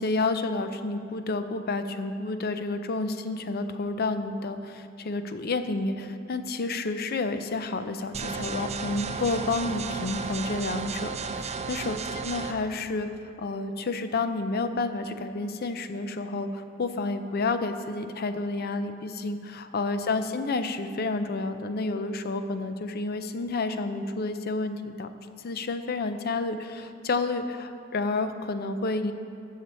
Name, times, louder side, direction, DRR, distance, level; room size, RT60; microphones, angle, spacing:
voice 1, 0.0-13.1 13.4-25.1 25.4-29.1, left 3 dB, 50° left, 9 dB, 0.5 m, -30 dB
sound 1, 8.1-12.5, right 5 dB, 35° right, 0.5 m, -33 dB
14.0 x 6.6 x 4.3 m, 2.5 s
head